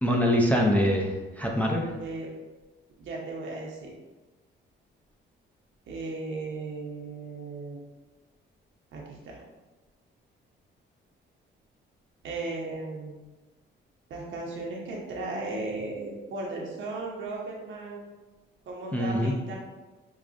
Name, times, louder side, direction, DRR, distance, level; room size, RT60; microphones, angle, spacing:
voice 1, 0.0-1.9 18.9-19.3, equal, 5° left, -1 dB, 0.6 m, -24 dB
voice 2, 1.9-2.3 3.0-3.9 5.9-7.8 8.9-9.4 12.2-13.2 14.1-18.0 18.7-19.6, right 2 dB, 70° right, -2 dB, 1.0 m, -36 dB
4.9 x 2.3 x 2.6 m, 1.2 s
cardioid pair, 90°, 20 cm